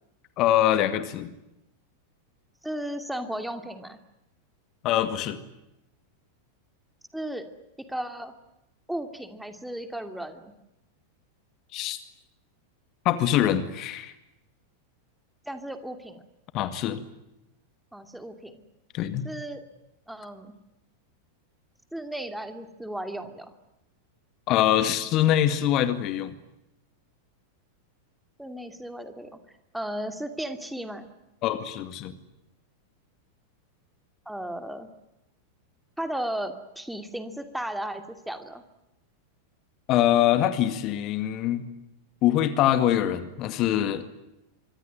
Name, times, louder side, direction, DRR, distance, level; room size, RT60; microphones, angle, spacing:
voice 1, 0.4-1.3 4.8-5.4 11.7-12.0 13.0-14.1 16.5-17.0 18.9-19.3 24.5-26.3 31.4-32.1 39.9-41.7 42.2-44.0, left 12 dB, 40° left, 11 dB, 2.2 m, -24 dB
voice 2, 2.6-4.0 7.1-7.4 7.9-8.3 8.9-10.5 15.5-16.2 17.9-18.6 19.2-19.6 20.1-20.6 21.9-23.5 28.4-29.4 29.7-31.1 34.3-34.9 36.0-38.6, right 1 dB, 5° right, 8 dB, 2.6 m, -35 dB
26.0 x 24.0 x 9.2 m, 0.89 s
figure-of-eight pair, 90°, 0 cm